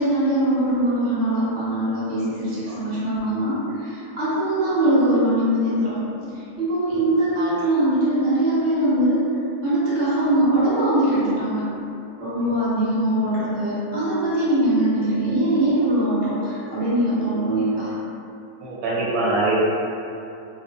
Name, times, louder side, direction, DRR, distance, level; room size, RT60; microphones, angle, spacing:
voice 1, 0.0-6.3 6.6-9.3 9.6-11.6 12.2-17.9, right 1 dB, 55° right, -10 dB, 1.2 m, -22 dB
voice 2, 18.6-19.6, right 2 dB, 85° right, -7 dB, 1.1 m, -23 dB
2.5 x 2.3 x 2.5 m, 2.7 s
omnidirectional pair, 1.5 m